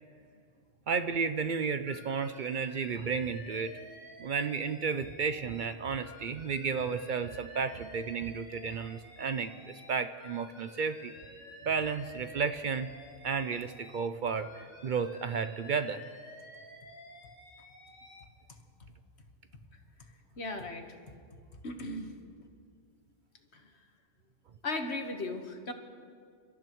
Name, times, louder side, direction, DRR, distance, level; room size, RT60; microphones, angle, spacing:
voice 1, 0.9-3.8 4.2-11.1 11.6-12.9 13.2-16.1, right 5 dB, 55° right, 10 dB, 0.5 m, -33 dB
Alarm, 1.9-5.7 6.0-9.9 10.2-14.1 14.4-18.2, left 2 dB, 85° left, 2.2 m, -52 dB
voice 2, 20.4-20.9 21.6-22.1 23.5-23.7 24.6-25.7, left 2 dB, 60° left, 4 dB, 1.5 m, -36 dB
29.0 x 13.5 x 3.1 m, 2.2 s
omnidirectional pair, 1.3 m